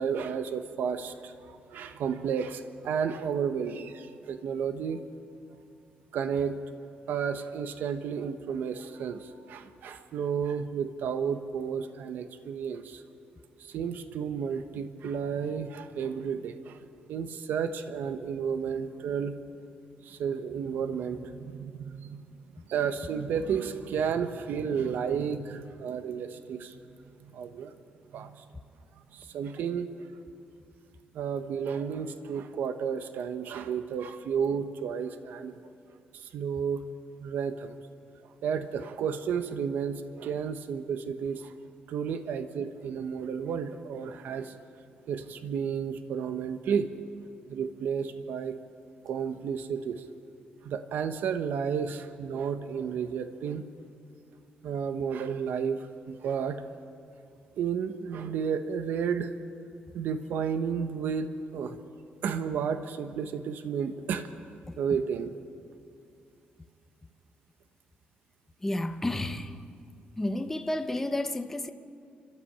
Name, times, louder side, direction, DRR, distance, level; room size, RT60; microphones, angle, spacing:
voice 1, 0.0-5.0 6.1-6.6 7.1-13.0 13.6-16.8 17.1-19.3 20.0-22.2 22.7-26.8 27.3-27.7 28.1-28.4 29.1-30.1 31.1-35.6 36.1-36.8 37.2-37.8 38.4-41.5 41.9-44.5 45.1-46.9 47.5-48.6 49.0-50.0 50.6-53.6 54.6-56.6 57.6-59.3 59.9-61.8 62.2-64.3 64.8-65.3, right 7 dB, 70° right, 9 dB, 1.0 m, -32 dB
voice 2, 68.6-69.6 70.2-71.7, left 1 dB, 10° left, 7 dB, 0.8 m, -31 dB
30.0 x 13.0 x 8.6 m, 2.5 s
cardioid pair, 170°, 3 cm